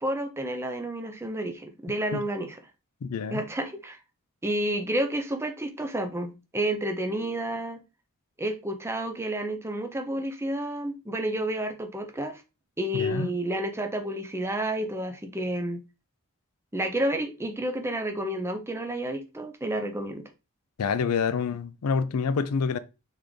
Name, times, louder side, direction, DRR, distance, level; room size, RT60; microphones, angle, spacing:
voice 1, 0.0-2.6 3.3-4.0 4.4-7.8 8.4-12.4 12.8-15.8 16.7-20.2, right 1 dB, 10° right, 0.5 m, -30 dB
voice 2, 3.0-3.4 12.9-13.3 20.8-22.8, left 5 dB, 85° left, 0.4 m, -27 dB
4.1 x 3.5 x 3.1 m
head